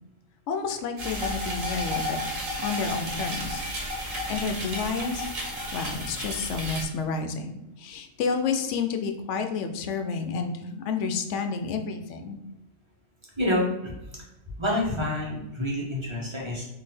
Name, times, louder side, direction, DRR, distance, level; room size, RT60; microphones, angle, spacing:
voice 1, 0.5-2.0 2.6-3.6 4.3-5.3 5.7-7.5 7.8-12.4, left 5 dB, 70° left, 6 dB, 0.9 m, -30 dB
sound 1, 1.0-6.8, equal, 80° right, 1.5 m, -32 dB
voice 2, 13.4-13.9 14.6-16.7, left 1 dB, 25° right, -3 dB, 1.1 m, -27 dB
3.9 x 2.8 x 4.1 m, 0.93 s
omnidirectional pair, 1.4 m